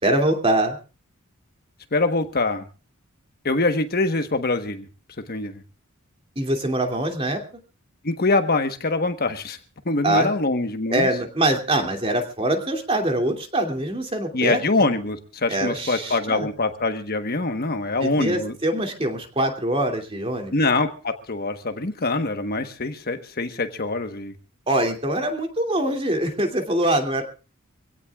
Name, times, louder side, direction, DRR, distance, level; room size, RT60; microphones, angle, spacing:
voice 1, 0.0-0.8 6.4-7.4 10.0-10.3 10.9-14.6 15.5-16.5 18.0-20.5 24.7-27.2, right 1 dB, 25° right, 4 dB, 2.6 m, -23 dB
voice 2, 1.9-2.6 3.4-4.9 5.3-5.6 8.0-9.6 9.8-11.1 14.3-18.5 20.5-24.3, left 3 dB, 45° left, 7 dB, 1.2 m, -24 dB
25.5 x 17.0 x 2.4 m, 0.34 s
head